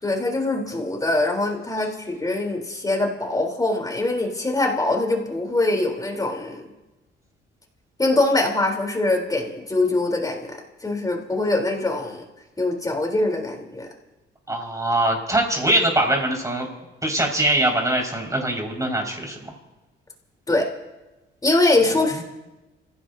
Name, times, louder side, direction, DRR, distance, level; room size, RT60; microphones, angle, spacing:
voice 1, 0.0-6.7 8.0-12.2 12.6-13.9 20.5-20.7 21.4-22.2, left 2 dB, 20° left, 1 dB, 3.7 m, -23 dB
voice 2, 14.5-16.7 17.0-19.5, right 1 dB, 15° right, 0 dB, 5.3 m, -22 dB
29.0 x 16.0 x 2.8 m, 1.1 s
cardioid pair, 90°, 20 cm